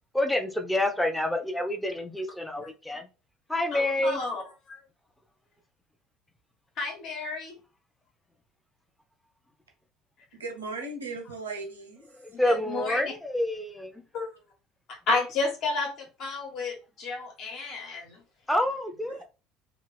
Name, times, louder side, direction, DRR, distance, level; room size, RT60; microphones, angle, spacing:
voice 1, 0.1-3.1 3.5-4.2 12.2-14.0 18.5-19.2, left 1 dB, 5° left, 0.6 m, -28 dB
voice 2, 3.7-4.4 4.7-4.8 6.8-7.5 12.3-13.1 14.1-14.3 14.9-18.2, left 3 dB, 50° left, 1.2 m, -31 dB
voice 3, 10.3-12.2 19.1-19.2, right 3 dB, 75° right, 0.7 m, -37 dB
2.8 x 2.4 x 3.2 m
figure-of-eight pair, 60°, 0 cm